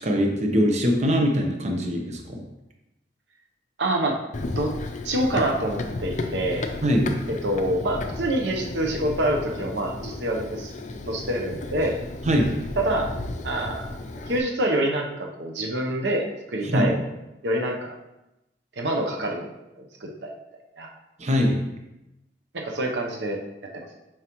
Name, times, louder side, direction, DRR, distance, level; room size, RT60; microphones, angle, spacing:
voice 1, 0.0-2.4 6.8-7.1 12.3-12.6 16.7-16.9 21.2-21.6, equal, 40° right, 2 dB, 0.9 m, -22 dB
voice 2, 3.8-4.2 4.6-4.7 5.0-6.6 7.4-10.7 11.1-12.0 12.8-13.1 13.4-13.9 14.3-17.1 17.4-18.0 18.7-19.5 20.0-20.9 22.5-23.4 23.7-23.9, right 1 dB, 90° right, 1 dB, 0.8 m, -26 dB
Run, 4.3-14.4, left 2 dB, 45° left, 0.5 m, -33 dB
7.3 x 4.8 x 3.0 m, 0.93 s
head